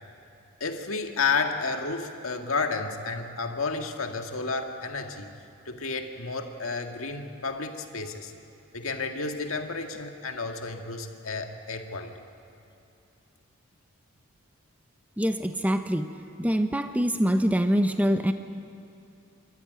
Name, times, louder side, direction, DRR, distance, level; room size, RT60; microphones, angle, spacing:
voice 1, 0.6-5.3 5.7-8.3 8.7-12.2, left 4 dB, 80° left, 4 dB, 1.9 m, -31 dB
voice 2, 15.2-16.1 16.4-18.3, equal, 5° right, 8 dB, 0.6 m, -24 dB
28.5 x 13.5 x 9.3 m, 2.7 s
head